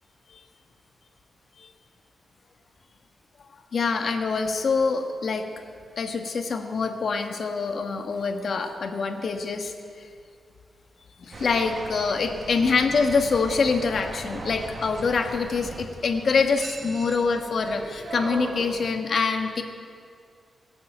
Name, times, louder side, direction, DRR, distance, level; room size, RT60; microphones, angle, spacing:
voice 1, 3.7-5.4 6.0-10.1 11.2-19.6, left 4 dB, 60° left, 5 dB, 1.4 m, -25 dB
sound 1, 11.3-18.9, right 3 dB, 45° right, 1.4 m, -39 dB
18.5 x 8.0 x 7.9 m, 2.2 s
wide cardioid pair, 125°, 0 cm